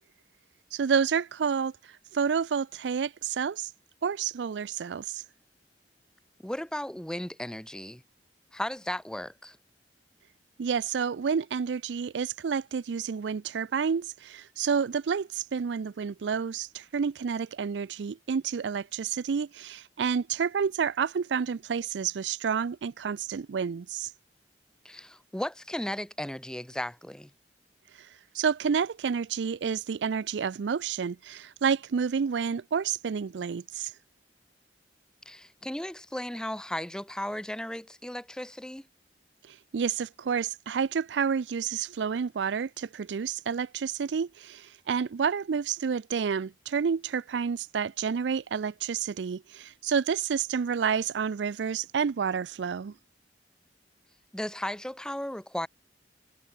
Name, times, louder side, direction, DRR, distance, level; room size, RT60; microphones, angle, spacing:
voice 1, 0.7-1.7 2.1-3.7 4.0-5.2 10.6-24.1 28.3-33.9 39.5-52.9, right 6 dB, 85° right, 0.4 m, -29 dB
voice 2, 6.4-8.0 8.5-9.6 24.8-27.3 35.3-38.9 54.3-55.7, left 1 dB, 5° left, 0.6 m, -35 dB
head